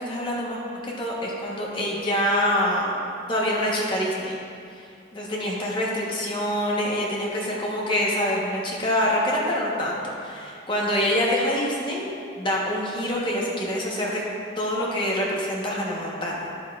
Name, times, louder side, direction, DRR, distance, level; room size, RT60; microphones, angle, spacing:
voice 1, 0.0-4.4 4.7-4.9 5.1-12.1 12.4-14.2 14.6-16.4, equal, 25° left, -4 dB, 1.2 m, -26 dB
10.0 x 7.9 x 2.5 m, 2.4 s
head